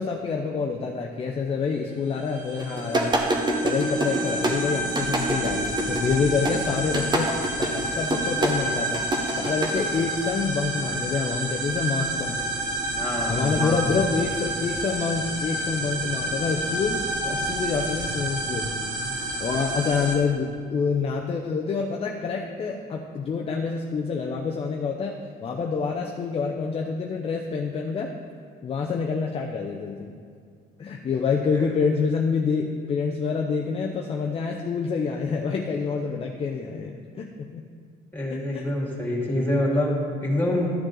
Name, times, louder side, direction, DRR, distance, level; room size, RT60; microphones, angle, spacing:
voice 1, 0.0-3.2 3.6-9.0 9.3-12.4 13.3-18.7 19.4-28.1 28.6-30.1 30.8-37.6 38.3-38.7, left 5 dB, 35° left, 1 dB, 0.6 m, -27 dB
sound 1, 2.1-20.2, right 1 dB, 45° right, 2.2 m, -29 dB
sound 2, 2.6-10.0, right 1 dB, 25° right, 1.0 m, -26 dB
voice 2, 13.0-13.8 38.1-40.7, left 1 dB, 10° left, -3 dB, 2.5 m, -26 dB
12.5 x 6.4 x 3.9 m, 2.2 s
cardioid pair, 110°, 17 cm